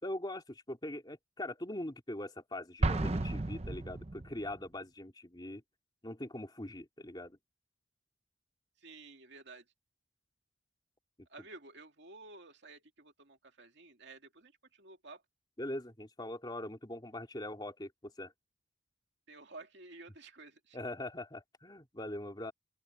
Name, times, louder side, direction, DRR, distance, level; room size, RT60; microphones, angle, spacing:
voice 1, 0.0-5.6 6.0-7.4 15.6-18.3 20.7-22.5, left 1 dB, 20° left, 3.2 m, -42 dB
Explosion, 2.8-4.6, right 2 dB, 30° right, 0.8 m, -33 dB
voice 2, 8.8-9.6 11.3-15.2 19.3-20.8, right 3 dB, 60° right, 2.6 m, -52 dB
open air
head